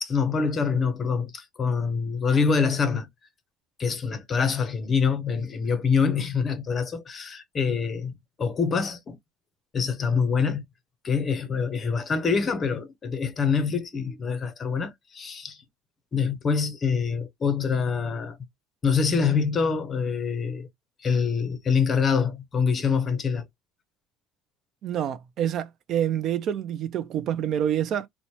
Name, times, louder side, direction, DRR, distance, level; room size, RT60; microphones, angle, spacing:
voice 1, 0.0-3.1 3.8-9.2 9.7-10.6 11.0-15.6 16.1-18.4 18.8-20.7 21.0-23.5, left 5 dB, 25° left, 0.5 m, -25 dB
voice 2, 24.8-28.1, right 10 dB, 45° right, 0.3 m, -27 dB
3.0 x 2.0 x 4.1 m
cardioid pair, 155°, 0 cm